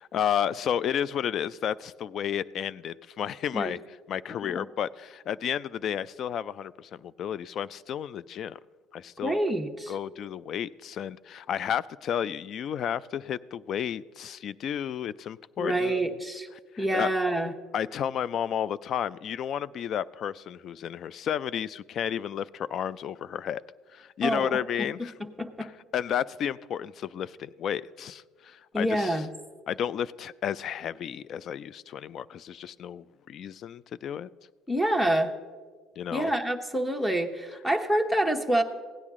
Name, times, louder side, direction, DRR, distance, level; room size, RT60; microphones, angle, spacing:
voice 1, 0.0-3.8 4.1-8.6 8.9-9.4 9.9-16.0 16.7-17.1 17.7-23.6 23.9-25.1 25.9-29.2 29.7-34.3 36.0-36.3, left 9 dB, 55° left, 0.3 m, -32 dB
voice 2, 9.2-9.9 15.6-16.5 16.8-17.5 24.2-25.7 28.7-29.3 34.7-35.3 36.1-38.6, right 1 dB, 5° left, 1.0 m, -27 dB
16.5 x 9.8 x 3.7 m
supercardioid pair, 75°, 0 cm